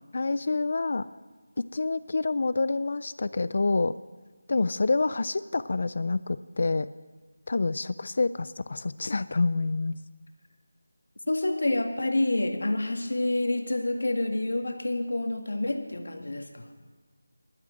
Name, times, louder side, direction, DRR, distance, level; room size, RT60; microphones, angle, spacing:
voice 1, 0.1-1.1 1.6-4.0 4.5-6.9 7.5-10.0, left 3 dB, 50° left, 16 dB, 0.3 m, -27 dB
voice 2, 11.3-16.7, left 2 dB, 80° left, 5 dB, 1.7 m, -28 dB
11.5 x 11.0 x 7.7 m, 1.3 s
figure-of-eight pair, 175°, 0 cm